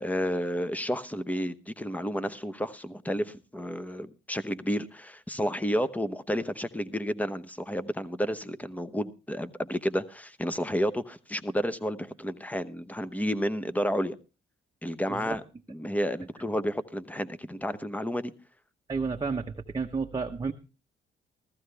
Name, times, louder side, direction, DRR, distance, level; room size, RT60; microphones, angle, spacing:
voice 1, 0.0-14.1 14.8-15.4 15.7-18.3, equal, 5° left, 0.9 m, -31 dB
voice 2, 18.9-20.5, right 4 dB, 20° right, 0.9 m, -31 dB
14.5 x 14.5 x 3.3 m
cardioid pair, 90°, 20 cm